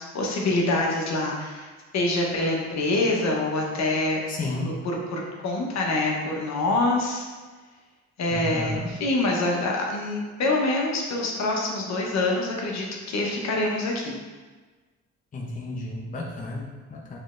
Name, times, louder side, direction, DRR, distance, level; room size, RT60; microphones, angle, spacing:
voice 1, 0.0-1.7 1.9-4.2 4.6-7.3 8.2-14.2, left 2 dB, 60° left, -1 dB, 1.0 m, -25 dB
voice 2, 4.3-4.7 8.3-8.9 15.3-17.2, left 2 dB, 25° left, -2 dB, 0.7 m, -32 dB
6.2 x 3.2 x 2.5 m, 1.4 s
cardioid pair, 90°, 30 cm